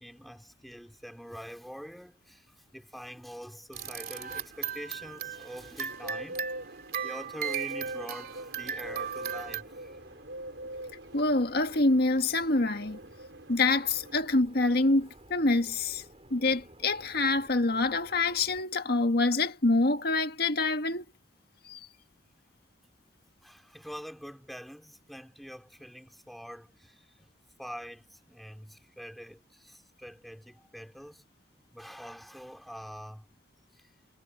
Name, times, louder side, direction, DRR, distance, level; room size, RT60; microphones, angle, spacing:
voice 1, 0.0-2.5 2.7-6.5 7.0-10.0 23.4-27.3 27.6-31.2 31.7-33.2, equal, ahead, 3.4 m, -45 dB
sound 1, 3.7-9.6, right 8 dB, 55° right, 3.0 m, -37 dB
Bird, 5.9-14.2, right 1 dB, 85° right, 4.6 m, -43 dB
sound 2, 8.8-18.6, right 1 dB, 35° right, 6.8 m, -55 dB
voice 2, 11.1-13.0 13.5-16.0 16.3-21.0 21.7-21.8, left 2 dB, 55° left, 1.8 m, -26 dB
head